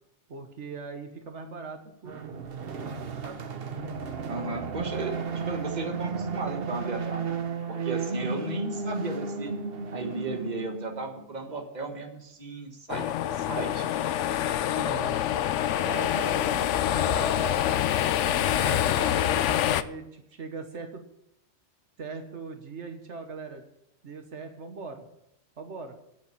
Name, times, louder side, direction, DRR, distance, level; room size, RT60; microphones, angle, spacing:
voice 1, 0.3-2.4 3.2-3.4 8.2-8.7 14.7-15.2 15.8-17.7 18.3-21.1 22.0-23.6 24.0-25.0 25.6-26.0, right 4 dB, 75° right, 5 dB, 1.5 m, -39 dB
sound 1, 2.1-11.3, right 4 dB, 55° right, 1.1 m, -34 dB
voice 2, 4.3-7.4 7.7-9.5 9.9-13.1 13.3-13.9, right 3 dB, 40° right, 3 dB, 1.6 m, -35 dB
sound 2, 12.9-19.8, left 11 dB, 85° left, 0.9 m, -26 dB
8.7 x 7.6 x 8.4 m, 0.80 s
omnidirectional pair, 1.2 m